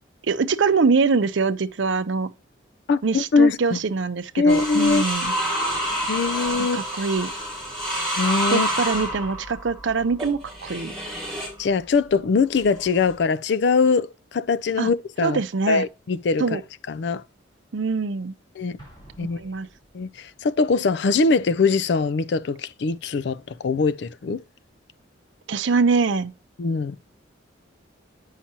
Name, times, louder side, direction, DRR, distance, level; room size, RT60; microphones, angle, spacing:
voice 1, 0.2-2.3 3.0-5.3 6.7-7.3 8.5-10.9 14.8-14.9 15.2-15.9 16.4-16.6 17.7-18.3 19.4-19.7 25.5-26.3, right 4 dB, 70° right, 0.5 m, -23 dB
voice 2, 2.9-3.8 4.4-5.0 6.1-6.8 8.2-8.7 11.6-15.4 15.7-16.4 16.9-17.2 18.6-18.8 19.2-19.4 19.9-24.4 26.6-27.0, left 4 dB, 60° left, 0.4 m, -22 dB
sound 1, 4.5-11.6 12.6-13.1, right 1 dB, ahead, 2.8 m, -28 dB
Explosion, 18.8-20.4, right 1 dB, 25° left, 3.7 m, -50 dB
8.6 x 5.7 x 2.8 m
head